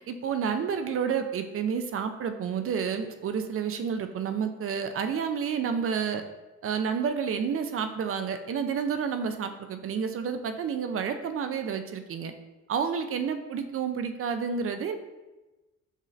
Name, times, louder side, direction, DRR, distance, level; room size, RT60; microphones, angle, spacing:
voice 1, 0.1-6.2 6.6-12.3 12.7-15.0, right 6 dB, 45° right, 8 dB, 0.5 m, -30 dB
6.5 x 2.5 x 3.2 m, 1.1 s
cardioid pair, 90°, 30 cm